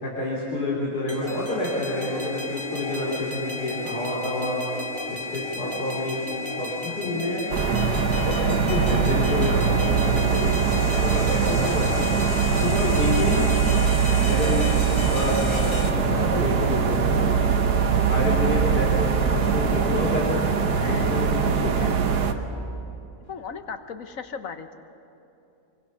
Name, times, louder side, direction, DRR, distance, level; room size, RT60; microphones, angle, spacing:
voice 1, 0.0-4.6 5.1-6.3 6.6-7.4 8.0-12.1 12.5-13.6 14.2-14.8 15.1-17.4 18.1-20.4 20.9-21.7, left 1 dB, 85° left, -5 dB, 4.1 m, -28 dB
sound 1, 1.1-15.9, left 3 dB, 20° left, 1.1 m, -33 dB
sound 2, 7.5-22.3, right 6 dB, 85° right, 1.6 m, -22 dB
voice 2, 20.8-21.3 21.8-22.1 23.3-24.7, left 6 dB, 60° left, 8 dB, 1.3 m, -37 dB
25.0 x 23.5 x 5.7 m, 2.7 s
omnidirectional pair, 1.6 m